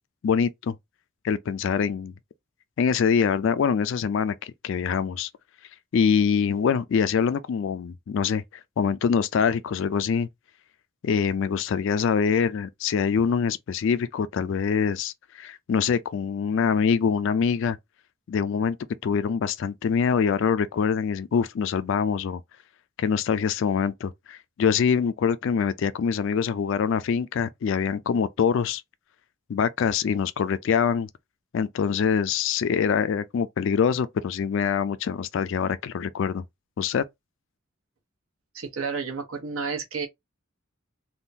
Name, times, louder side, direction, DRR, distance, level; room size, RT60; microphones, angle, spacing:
voice 1, 0.2-0.7 1.2-2.1 2.8-5.3 5.9-10.3 11.0-17.8 18.3-18.8 19.0-22.4 23.0-28.8 29.5-31.1 31.5-36.4 36.8-37.0, left 6 dB, 65° left, 0.3 m, -24 dB
voice 2, 38.5-40.1, right 5 dB, 80° right, 1.1 m, -31 dB
3.6 x 2.3 x 2.7 m
head